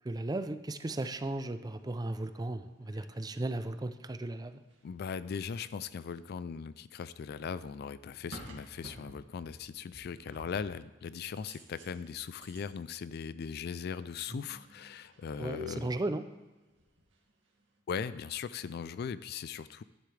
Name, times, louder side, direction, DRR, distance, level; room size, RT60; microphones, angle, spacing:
voice 1, 0.0-4.6 14.3-14.5 15.4-16.2, right 2 dB, 20° right, 10 dB, 0.5 m, -36 dB
sound 1, 2.0-2.2 3.1-3.3 3.6-5.4 7.8-9.7 9.9-10.9 11.3-12.7 13.6-13.7 13.9-16.2 16.5-17.3 17.6-17.8, left 2 dB, 80° right, 2.0 m, -50 dB
voice 2, 4.8-15.9 17.9-19.8, left 6 dB, 55° left, 15 dB, 0.3 m, -39 dB
11.5 x 10.0 x 3.3 m, 1.2 s
head